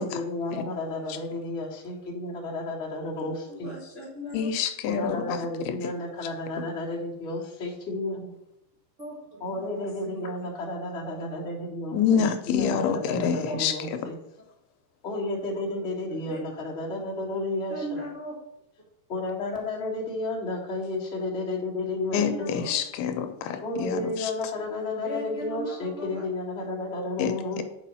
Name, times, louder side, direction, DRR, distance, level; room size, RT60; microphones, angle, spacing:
voice 1, 0.0-3.7 4.9-8.3 9.4-14.1 15.0-17.7 19.1-22.5 23.6-27.6, left 2 dB, 30° left, -5 dB, 1.2 m, -32 dB
voice 2, 3.5-4.5 9.0-10.3 13.5-13.6 16.3-16.4 17.7-18.4 22.1-22.7 24.9-26.2, right 1 dB, 35° right, -5 dB, 1.1 m, -38 dB
voice 3, 4.3-5.8 6.6-6.7 11.9-13.7 22.1-24.3 27.2-27.6, left 7 dB, 80° left, 7 dB, 2.6 m, -27 dB
6.7 x 5.0 x 5.6 m, 0.85 s
omnidirectional pair, 4.6 m